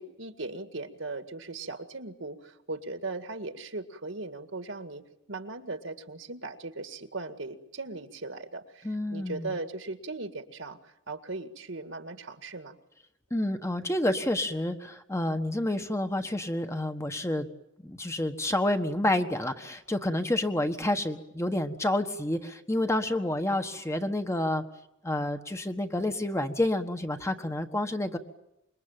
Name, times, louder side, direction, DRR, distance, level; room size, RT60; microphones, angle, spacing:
voice 1, 0.0-5.0 5.3-12.8, right 3 dB, 70° right, 8 dB, 2.0 m, -38 dB
voice 2, 8.8-9.5 13.3-17.5 17.8-24.6 25.0-28.2, left 1 dB, 15° left, 7 dB, 1.5 m, -29 dB
26.0 x 23.0 x 9.0 m, 0.84 s
head